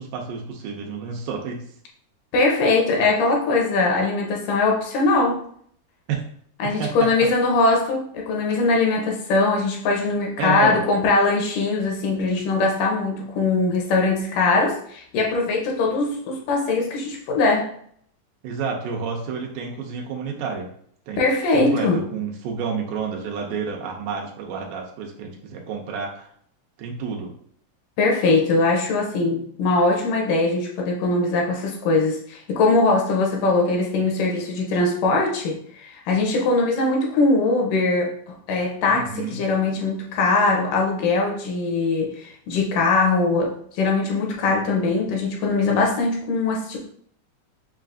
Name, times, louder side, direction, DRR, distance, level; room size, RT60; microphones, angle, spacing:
voice 1, 0.0-1.6 6.1-6.2 6.6-7.1 8.5-8.6 10.4-10.8 18.4-20.7 21.1-21.2 21.5-26.3 26.8-27.3 38.9-39.4, right 6 dB, 85° right, 0 dB, 2.3 m, -29 dB
voice 2, 2.3-5.4 6.6-17.7 21.2-22.0 28.0-46.8, left 3 dB, 80° left, 0 dB, 2.3 m, -21 dB
6.3 x 2.5 x 2.5 m, 0.62 s
omnidirectional pair, 3.8 m